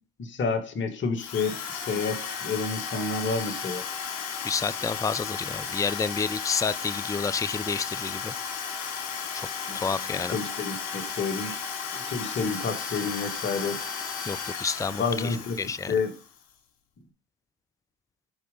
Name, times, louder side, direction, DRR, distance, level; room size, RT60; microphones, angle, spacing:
voice 1, 0.2-3.8 9.7-9.9 10.2-11.6 11.9-13.8 15.0-15.6 15.9-16.1, left 4 dB, 35° left, 2.1 m, -29 dB
Drill, 1.2-16.4, left 6 dB, 60° left, 3.2 m, -34 dB
voice 2, 4.4-8.3 9.3-9.5 9.7-10.3 14.3-15.9, left 5 dB, 10° left, 0.5 m, -30 dB
10.5 x 4.9 x 5.4 m
supercardioid pair, 90°, 33 cm